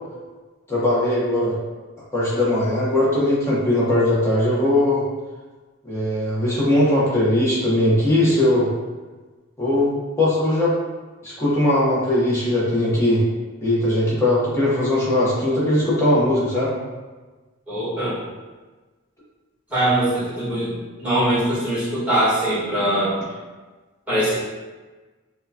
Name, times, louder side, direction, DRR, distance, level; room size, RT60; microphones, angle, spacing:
voice 1, 0.7-1.5 2.1-5.0 5.8-8.7 9.6-10.7 11.2-13.2 13.6-16.7, left 1 dB, 15° left, -8 dB, 0.9 m, -19 dB
voice 2, 17.7-18.2 19.7-20.7 21.0-23.2 24.1-24.3, right 1 dB, 5° right, -12 dB, 1.4 m, -21 dB
4.5 x 2.2 x 2.7 m, 1.3 s
head